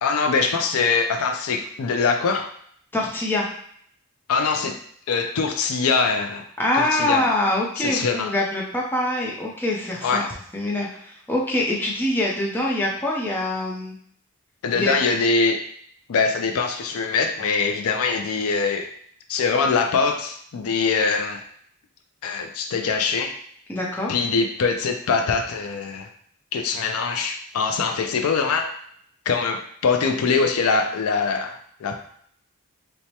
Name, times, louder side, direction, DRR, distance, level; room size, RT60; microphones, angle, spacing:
voice 1, 0.0-2.5 4.3-4.8 5.1-6.4 6.8-7.3 7.8-8.3 10.0-10.3 14.6-15.6 16.1-18.9 19.3-21.4 22.2-23.3 24.1-26.1 26.5-28.7 29.3-32.0, left 4 dB, 80° left, 5 dB, 0.4 m, -23 dB
voice 2, 2.9-3.5 6.6-10.2 10.5-13.9 14.7-14.9 23.7-24.2, left 1 dB, 10° left, -3 dB, 0.6 m, -24 dB
4.5 x 2.1 x 2.8 m, 0.65 s
head